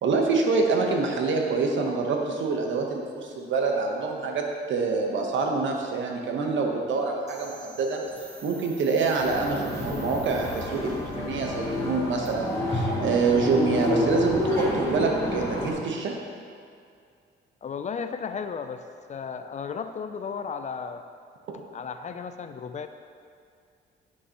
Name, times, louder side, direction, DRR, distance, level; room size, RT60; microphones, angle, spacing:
voice 1, 0.0-8.0 8.4-16.2, right 4 dB, 70° right, 1 dB, 1.0 m, -26 dB
sound 1, 7.3-11.1, right 3 dB, 35° right, 0.9 m, -47 dB
sound 2, 9.2-15.7, left 1 dB, 15° left, 1.5 m, -29 dB
voice 2, 17.6-18.8 19.1-21.1 21.7-22.9, left 6 dB, 35° left, 8 dB, 0.4 m, -34 dB
9.8 x 5.4 x 2.9 m, 2.3 s
cardioid pair, 105°, 20 cm